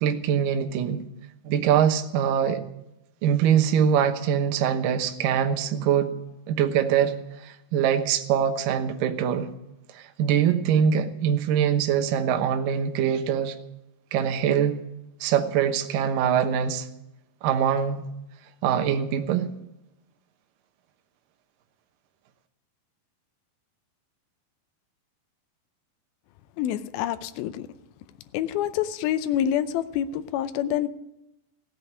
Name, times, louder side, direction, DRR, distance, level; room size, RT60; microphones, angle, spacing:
voice 1, 0.0-1.0 1.4-2.6 3.2-6.1 6.5-7.1 7.4-9.5 9.9-13.5 14.1-14.8 15.2-16.9 17.4-18.0 18.6-19.5, right 8 dB, 70° right, 6 dB, 2.3 m, -23 dB
voice 2, 26.6-27.7 28.3-30.9, left 10 dB, 85° left, 11 dB, 2.1 m, -27 dB
16.5 x 7.8 x 9.4 m, 0.88 s
omnidirectional pair, 5.1 m